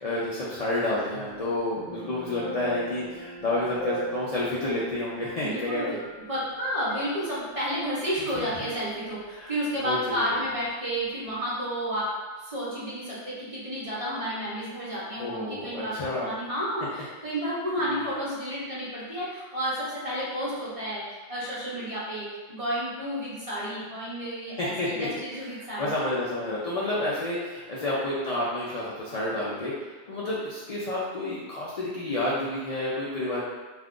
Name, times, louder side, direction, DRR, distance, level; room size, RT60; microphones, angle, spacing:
voice 1, 0.0-6.0 8.4-8.7 9.3-9.5 9.8-10.3 15.2-16.3 24.6-25.1 25.4-33.4, left 1 dB, 50° left, -8 dB, 0.4 m, -30 dB
sound 1, 1.1-6.6 6.9-7.1, right 1 dB, 70° left, 0.8 m, -40 dB
voice 2, 5.4-6.0 6.3-25.9, equal, 35° right, -8 dB, 0.8 m, -31 dB
2.5 x 2.4 x 3.6 m, 1.3 s
omnidirectional pair, 1.1 m